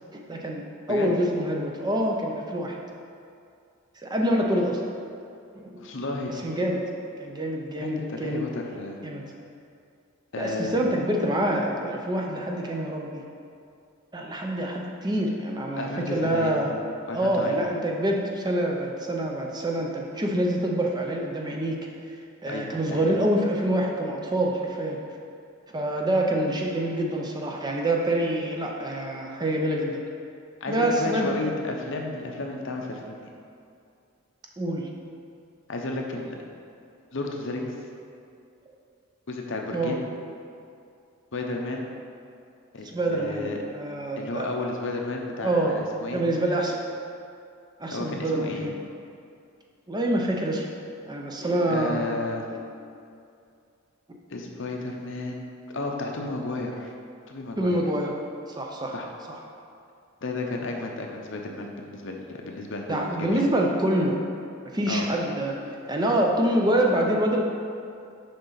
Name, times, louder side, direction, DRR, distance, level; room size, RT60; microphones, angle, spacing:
voice 1, 0.1-2.8 4.0-4.8 5.5-5.8 6.3-6.8 7.2-8.5 9.0-9.2 10.4-13.2 14.1-16.7 17.1-21.8 22.1-22.2 22.4-25.0 25.7-30.0 30.7-31.4 34.6-34.9 39.7-40.0 42.9-44.5 45.4-45.7 46.1-46.8 47.8-48.7 49.9-50.7 51.1-52.0 52.5-52.6 57.6-58.1 58.6-58.9 59.3-59.4 62.9-64.2 64.7-65.6 65.9-67.4, right 1 dB, 20° right, 0 dB, 0.5 m, -26 dB
voice 2, 5.8-6.4 7.8-9.0 10.3-10.8 15.8-16.6 17.1-17.6 22.4-23.1 30.6-33.3 35.7-36.4 37.1-37.7 39.3-40.0 41.3-41.8 42.7-43.6 44.2-46.2 47.9-48.7 51.7-52.5 54.3-55.4 55.7-56.9 57.3-57.8 58.9-59.1 60.2-63.5 64.9-65.1, left 2 dB, 60° left, 1 dB, 0.7 m, -32 dB
6.9 x 5.3 x 3.9 m, 2.4 s
head